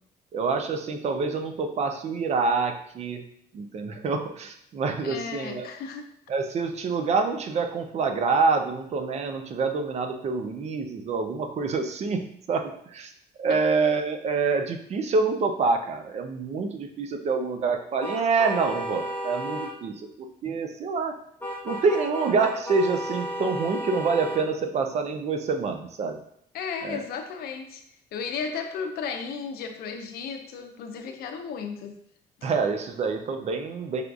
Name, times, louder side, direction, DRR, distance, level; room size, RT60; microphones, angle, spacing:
voice 1, 0.3-3.2 3.5-5.7 6.3-13.1 13.4-21.2 21.6-26.2 26.8-27.1 32.4-34.0, right 4 dB, 40° right, 5 dB, 0.5 m, -26 dB
voice 2, 5.0-6.1 13.5-13.6 26.5-27.8 28.1-32.0 32.4-32.5, left 6 dB, 65° left, 5 dB, 0.5 m, -34 dB
sound 1, 18.0-19.7 21.4-24.4, equal, 10° left, 0.9 m, -33 dB
4.9 x 2.4 x 2.3 m, 0.69 s
cardioid pair, 110°, 17 cm